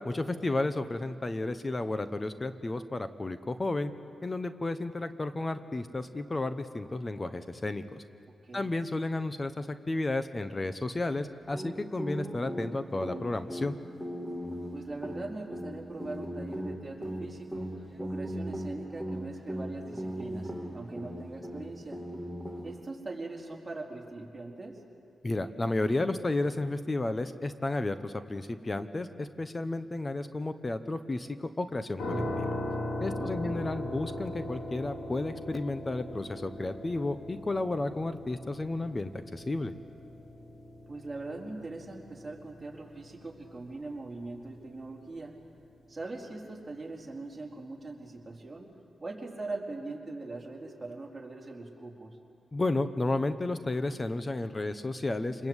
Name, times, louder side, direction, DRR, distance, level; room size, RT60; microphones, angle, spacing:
voice 1, 0.0-3.9 4.2-8.0 8.5-13.8 25.2-32.5 33.0-39.7 52.5-55.5, left 2 dB, 25° left, 10 dB, 1.1 m, -32 dB
sound 1, 11.5-22.9, equal, 5° left, 2.5 m, -39 dB
voice 2, 14.7-17.7 18.0-22.0 22.6-24.8 33.2-33.6 40.9-45.3 45.9-48.7 49.0-52.2, right 2 dB, 20° right, -2 dB, 4.5 m, -41 dB
sound 2, 32.0-44.8, left 1 dB, 80° left, 5.2 m, -39 dB
28.0 x 21.5 x 8.3 m, 2.4 s
cardioid pair, 80°, 0 cm